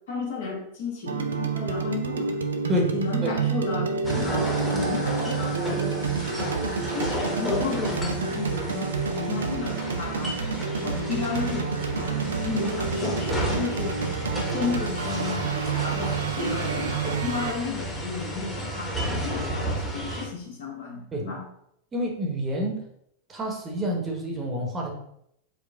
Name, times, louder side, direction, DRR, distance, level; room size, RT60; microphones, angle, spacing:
voice 1, 0.1-2.4 2.9-6.6 6.9-10.5 10.8-14.0 14.5-21.4, left 4 dB, 55° left, -2 dB, 1.2 m, -33 dB
sound 1, 1.1-17.5, right 5 dB, 70° right, 0.4 m, -29 dB
sound 2, 4.0-20.3, equal, 10° left, 1.1 m, -33 dB
voice 2, 21.9-22.8 23.3-24.9, equal, 20° right, 0 dB, 0.9 m, -28 dB
4.7 x 2.2 x 3.4 m, 0.73 s
figure-of-eight pair, 90°, 0 cm